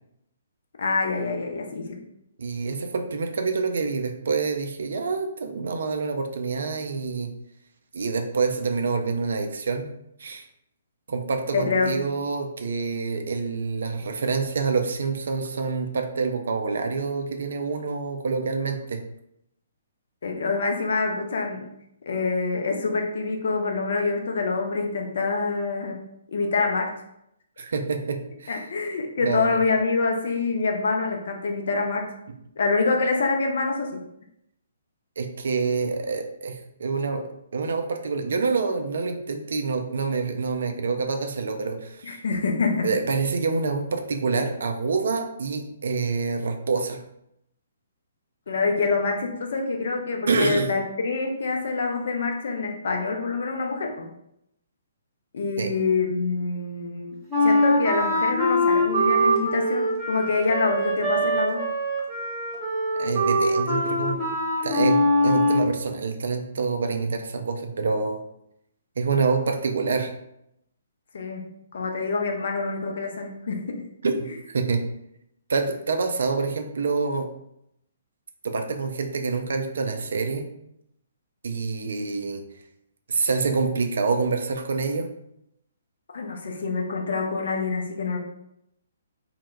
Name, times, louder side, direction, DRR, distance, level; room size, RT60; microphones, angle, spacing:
voice 1, 0.8-2.0 11.5-12.0 20.2-21.7 22.1-26.0 26.3-27.0 28.5-32.1 32.6-34.0 42.0-42.9 48.5-54.1 55.3-57.2 57.4-61.6 71.1-73.8 86.1-88.2, left 4 dB, 55° left, 2 dB, 0.4 m, -26 dB
voice 2, 2.4-7.3 7.9-9.9 10.2-10.5 11.1-19.0 27.6-28.5 29.2-29.6 35.2-42.2 42.8-47.0 50.3-50.7 55.6-55.7 62.9-64.2 64.6-68.2 69.0-70.1 74.0-74.8 75.5-77.3 78.4-80.5 81.4-82.4 83.1-85.1, right 4 dB, 60° right, 5 dB, 0.3 m, -27 dB
Wind instrument woodwind instrument, 57.3-65.7, equal, 5° right, 0.9 m, -23 dB
2.1 x 2.1 x 3.1 m, 0.78 s
figure-of-eight pair, 125°, 0 cm